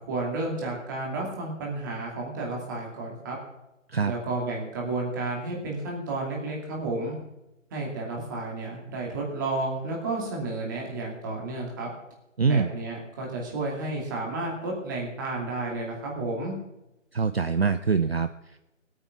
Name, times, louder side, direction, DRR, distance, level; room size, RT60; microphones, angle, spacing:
voice 1, 0.1-3.4 4.0-7.2 7.7-11.9 12.4-16.5, right 2 dB, 15° right, -2 dB, 2.5 m, -32 dB
voice 2, 12.4-12.7 17.1-18.6, right 5 dB, 50° right, 11 dB, 0.6 m, -24 dB
18.0 x 8.9 x 5.9 m, 0.94 s
figure-of-eight pair, 165°, 39 cm